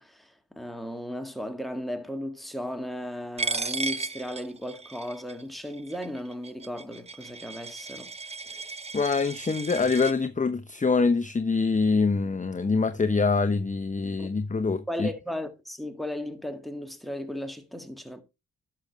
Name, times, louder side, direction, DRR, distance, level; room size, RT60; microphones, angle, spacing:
voice 1, 0.0-8.1 14.2-14.3 14.9-18.2, equal, ahead, 1.8 m, -36 dB
Coin (dropping), 3.4-10.1, right 3 dB, 15° right, 0.6 m, -35 dB
voice 2, 8.5-15.1, left 4 dB, 20° left, 0.8 m, -25 dB
11.5 x 6.8 x 3.3 m
supercardioid pair, 45°, 37 cm